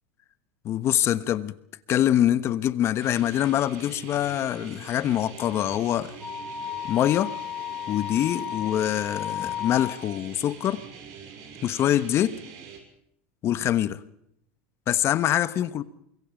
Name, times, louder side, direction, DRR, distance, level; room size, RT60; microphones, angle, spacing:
voice 1, 0.6-1.5 1.9-6.1 6.9-7.3 7.9-10.8 11.6-12.4 13.4-14.0 14.9-15.8, left 11 dB, 40° left, 1.2 m, -24 dB
sound 1, 3.0-12.8, right 7 dB, 60° right, 6.0 m, -44 dB
Wind instrument woodwind instrument, 6.2-10.1, left 9 dB, 10° left, 6.3 m, -34 dB
25.0 x 23.0 x 5.3 m
supercardioid pair, 110°, 7 cm